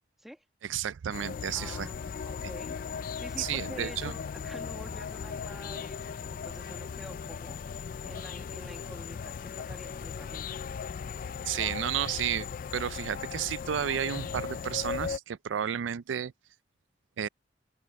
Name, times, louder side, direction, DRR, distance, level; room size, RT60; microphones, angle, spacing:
voice 1, 0.6-1.9 2.4-2.5 3.4-4.1 11.5-16.3 17.2-17.3, right 9 dB, 85° right, 0.4 m, -32 dB
sound 1, 1.1-15.2, left 6 dB, 45° left, 0.3 m, -38 dB
voice 2, 1.5-2.8 3.2-10.6, equal, ahead, 1.5 m, -48 dB
open air
head